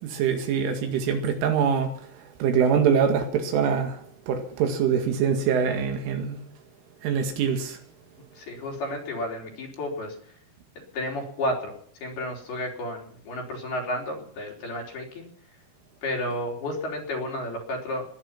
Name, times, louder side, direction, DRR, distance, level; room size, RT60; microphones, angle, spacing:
voice 1, 0.0-1.9 2.4-4.0 4.3-6.4 7.0-7.8, right 7 dB, 75° right, 4.4 m, -24 dB
voice 2, 8.4-10.2 10.9-11.7 12.0-15.3 16.0-18.0, left 1 dB, 50° left, 5.2 m, -32 dB
21.0 x 10.5 x 5.9 m
omnidirectional pair, 5.8 m